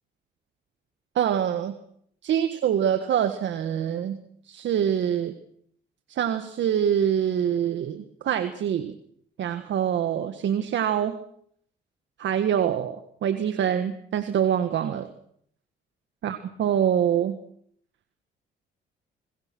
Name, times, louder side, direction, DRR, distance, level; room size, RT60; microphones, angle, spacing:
voice 1, 1.1-1.7 2.2-4.2 4.5-5.3 6.1-9.0 9.4-11.2 12.2-15.1 16.2-17.4, right 9 dB, 70° right, 9 dB, 1.6 m, -25 dB
26.5 x 21.0 x 6.2 m, 0.66 s
cardioid pair, 90°, 20 cm